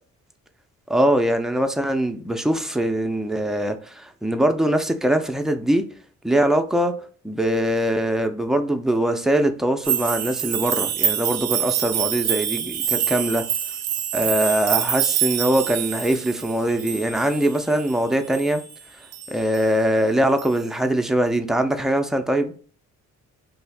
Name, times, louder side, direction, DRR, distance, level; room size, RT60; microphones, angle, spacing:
voice 1, 0.9-5.9 6.2-6.9 7.2-13.4 14.1-18.6 19.3-22.5, right 1 dB, ahead, 0.4 m, -22 dB
sound 1, 9.8-18.8 19.1-19.7 20.4-20.5, right 9 dB, 60° right, 0.5 m, -26 dB
2.8 x 2.4 x 3.3 m
cardioid pair, 90°, 30 cm